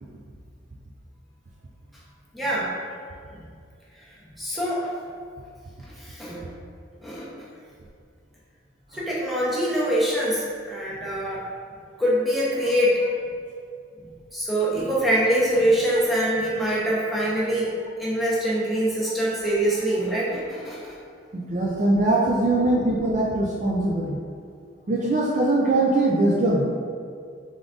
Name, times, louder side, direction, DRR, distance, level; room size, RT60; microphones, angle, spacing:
voice 1, 2.3-2.7 3.3-3.5 4.4-4.9 5.9-6.5 7.0-7.5 8.9-11.4 12.0-13.0 14.3-17.7 18.0-21.0 22.6-22.8, right 1 dB, ahead, -8 dB, 0.8 m, -24 dB
voice 2, 21.3-24.2 24.9-26.7, right 2 dB, 40° right, -3 dB, 0.4 m, -22 dB
3.8 x 3.6 x 3.7 m, 2.3 s
head